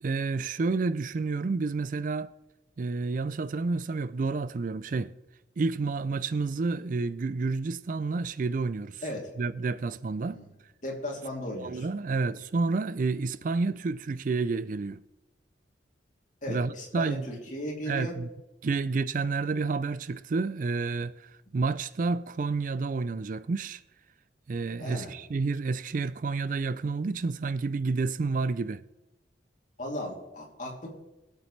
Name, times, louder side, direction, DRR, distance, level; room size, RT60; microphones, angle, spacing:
voice 1, 0.0-2.3 2.8-5.1 5.6-9.0 9.4-10.4 11.6-15.0 16.5-17.3 17.9-18.3 18.6-23.8 24.5-28.8, right 4 dB, 45° right, 0.4 m, -30 dB
voice 2, 9.0-9.3 10.3-10.5 10.8-12.3 16.4-18.1 24.8-25.1 29.8-30.9, left 1 dB, 45° left, 3.0 m, -36 dB
22.5 x 8.1 x 3.3 m
head